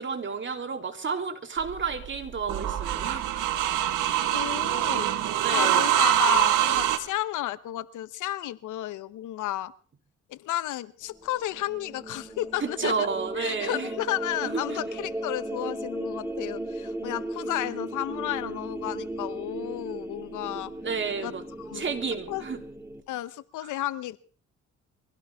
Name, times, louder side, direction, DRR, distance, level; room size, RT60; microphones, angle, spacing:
voice 1, 0.0-3.8 5.4-5.8 12.6-13.9 14.4-14.8 20.8-21.4 21.7-22.6 23.6-23.7, right 5 dB, 40° right, 5 dB, 3.1 m, -31 dB
sound 1, 1.6-7.0, right 12 dB, 85° right, 1.5 m, -24 dB
voice 2, 4.3-5.1 5.5-9.7 10.3-13.1 13.4-20.7 21.2-21.3 21.6-21.9 22.3-22.4 23.1-24.2, left 14 dB, 80° left, 16 dB, 0.9 m, -32 dB
chorus transition, 11.1-23.0, right 1 dB, 10° right, 2.2 m, -36 dB
23.5 x 16.5 x 3.5 m, 0.41 s
cardioid pair, 90°, 30 cm